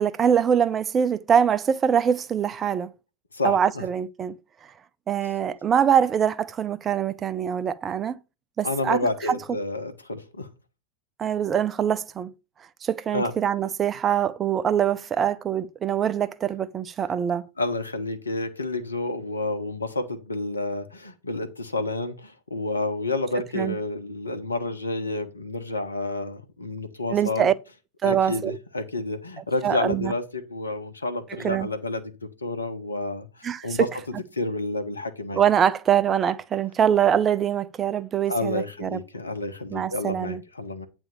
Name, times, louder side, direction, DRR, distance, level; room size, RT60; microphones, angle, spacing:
voice 1, 0.0-2.9 3.4-4.3 5.1-8.2 8.6-9.0 9.3-9.4 11.2-12.3 12.8-17.5 23.5-23.8 27.1-27.5 28.0-28.6 29.6-30.1 31.3-31.7 33.4-33.9 35.3-39.0 39.7-40.4, right 8 dB, 25° right, 0.5 m, -23 dB
voice 2, 3.3-3.8 8.6-10.5 13.1-13.3 17.6-27.5 28.0-33.3 33.6-33.9 34.3-35.4 38.3-40.9, left 2 dB, 80° left, 1.1 m, -29 dB
9.1 x 3.5 x 6.7 m
figure-of-eight pair, 90°, 0 cm